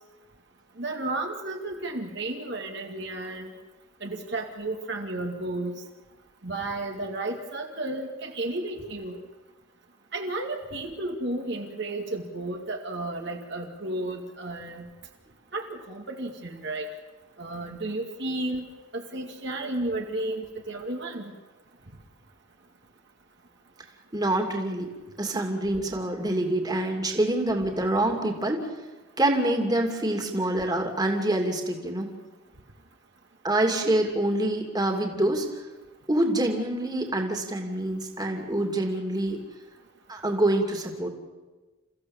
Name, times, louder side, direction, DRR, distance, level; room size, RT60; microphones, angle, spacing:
voice 1, 0.8-3.5 4.0-5.8 6.4-9.2 10.1-14.9 15.5-16.9 17.4-18.6 18.9-21.3, right 2 dB, 60° right, 2 dB, 2.2 m, -33 dB
voice 2, 24.1-24.9 25.2-28.6 29.2-32.1 33.4-35.5 36.1-39.4 40.1-41.1, right 1 dB, 20° right, 3 dB, 2.7 m, -26 dB
29.0 x 15.0 x 7.2 m, 1.3 s
head